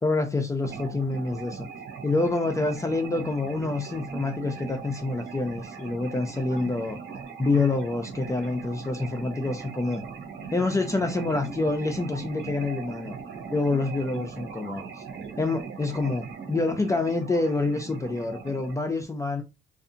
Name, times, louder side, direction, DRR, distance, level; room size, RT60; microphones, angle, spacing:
voice 1, 0.0-1.7 2.0-7.0 7.4-10.0 10.4-13.2 13.5-15.0 15.4-19.4, left 3 dB, 15° left, 0.4 m, -27 dB
sound 1, 0.6-18.7, right 6 dB, 65° right, 0.8 m, -39 dB
2.6 x 2.5 x 2.5 m
cardioid pair, 90°, 20 cm